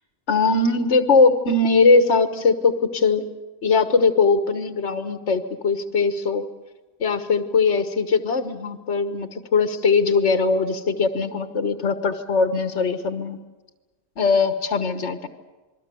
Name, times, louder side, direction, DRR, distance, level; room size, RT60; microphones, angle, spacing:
voice 1, 0.3-3.2 3.6-6.4 7.0-13.4 14.2-15.3, left 4 dB, 85° left, 8 dB, 1.6 m, -20 dB
28.0 x 21.5 x 6.9 m, 1.2 s
omnidirectional pair, 1.2 m